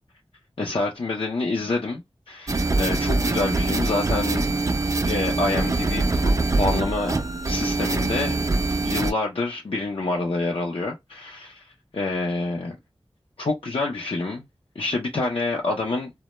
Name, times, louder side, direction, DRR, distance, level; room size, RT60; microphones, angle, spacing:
voice 1, 0.6-4.4 5.1-6.3 6.6-7.1 7.5-8.5 8.8-12.8 13.4-14.5 14.8-16.1, left 3 dB, 65° left, 0.5 m, -27 dB
sound 1, 2.5-9.1, right 2 dB, 35° right, 0.4 m, -23 dB
2.1 x 2.0 x 2.9 m
wide cardioid pair, 55°, 10 cm